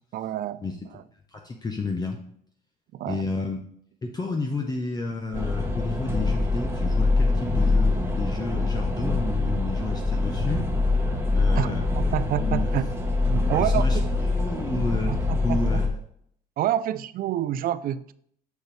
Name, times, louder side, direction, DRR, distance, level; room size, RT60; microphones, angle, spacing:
voice 1, 0.1-0.6 0.9-1.0 2.9-3.2 11.6-11.7 12.0-12.9 13.3-14.1 15.1-15.6 16.6-18.1, right 11 dB, 60° right, 16 dB, 0.4 m, -28 dB
voice 2, 1.3-2.2 3.0-3.6 4.0-10.7 11.3-11.9 12.4-12.7 13.5-15.1 15.4-15.9, left 3 dB, 25° left, 2 dB, 0.8 m, -31 dB
sound 1, 5.3-15.9, left 3 dB, 15° right, 1.2 m, -24 dB
6.7 x 6.4 x 3.3 m, 0.66 s
cardioid pair, 110°, 17 cm